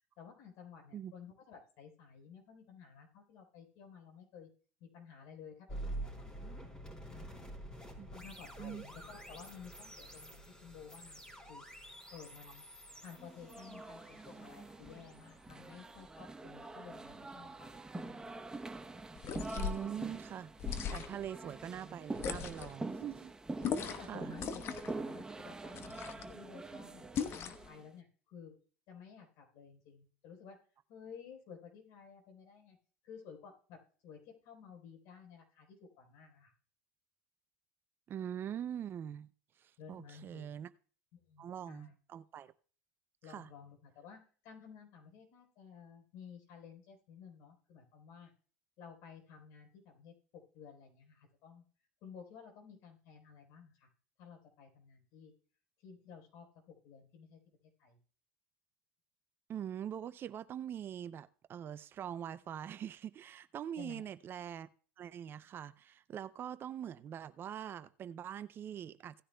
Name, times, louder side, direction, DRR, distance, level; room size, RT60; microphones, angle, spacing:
voice 1, 0.2-4.5 4.8-6.5 7.1-7.6 8.1-11.6 12.1-12.7 13.0-18.3 23.7-25.8 26.2-28.6 28.9-30.6 30.9-32.8 33.0-36.5 39.8-40.5 41.1-41.9 43.2-48.3 48.8-51.6 52.0-53.9 54.2-55.3 55.8-57.4 57.8-58.0 63.8-64.0, left 6 dB, 60° left, 4.0 m, -54 dB
sound 1, 5.7-16.7, right 1 dB, 15° left, 3.5 m, -48 dB
sound 2, 13.1-27.8, right 2 dB, 10° right, 0.8 m, -45 dB
sound 3, 19.2-19.9 20.6-21.3 22.1-22.8 23.6-24.1 24.4-24.9 25.7-26.3 27.1-27.7, left 7 dB, 45° left, 1.0 m, -38 dB
voice 2, 19.6-23.3 24.1-24.4 38.1-39.3 39.6-40.7 41.4-42.5 43.3-43.5 59.5-64.7 65.0-69.2, right 9 dB, 40° right, 0.5 m, -43 dB
17.0 x 10.0 x 2.2 m
hypercardioid pair, 95°, 6 cm